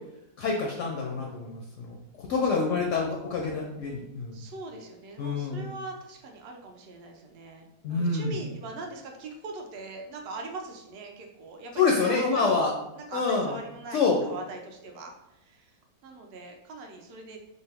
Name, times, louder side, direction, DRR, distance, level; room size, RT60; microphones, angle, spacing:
voice 1, 0.4-2.0 2.3-4.4 5.2-5.7 7.8-8.4 11.8-12.7 13.1-13.5 13.9-14.2, left 4 dB, 65° left, 0 dB, 0.8 m, -26 dB
voice 2, 4.3-7.6 7.9-15.7 16.0-17.4, right 3 dB, 75° right, 2 dB, 0.5 m, -41 dB
4.0 x 2.2 x 3.4 m, 0.90 s
omnidirectional pair, 1.6 m